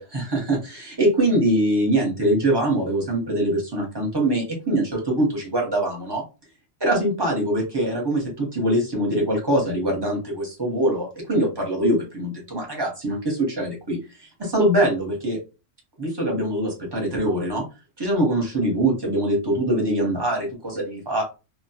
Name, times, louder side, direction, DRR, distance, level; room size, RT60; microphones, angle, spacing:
voice 1, 0.0-6.2 6.8-14.0 14.4-15.4 16.0-17.6 18.0-21.2, right 1 dB, 25° right, 0 dB, 0.8 m, -23 dB
2.2 x 2.1 x 2.7 m, 0.29 s
omnidirectional pair, 1.2 m